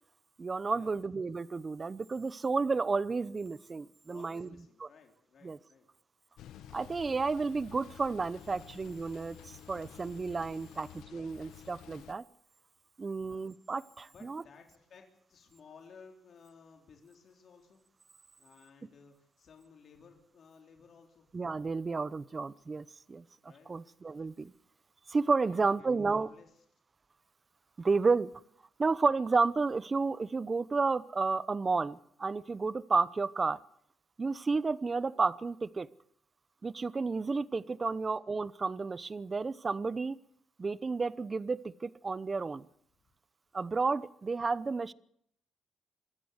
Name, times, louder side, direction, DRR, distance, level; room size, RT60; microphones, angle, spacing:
voice 1, 0.4-4.5 4.8-4.9 5.4-5.6 6.7-12.2 13.0-14.4 21.3-23.2 23.7-24.5 25.1-26.3 27.8-28.3 28.8-33.6 34.2-35.9 36.6-40.2 40.6-42.7 43.5-44.9, right 4 dB, 30° right, 18 dB, 0.8 m, -31 dB
voice 2, 4.1-5.9 10.7-10.9 13.2-13.5 14.1-17.8 18.4-21.3 23.4-23.8 25.5-26.5 37.8-38.0, left 5 dB, 55° left, 2 dB, 3.7 m, -57 dB
sound 1, 6.4-12.1, left 10 dB, 85° left, 1.1 m, -51 dB
25.5 x 14.0 x 8.1 m, 0.71 s
cardioid pair, 90°, 0 cm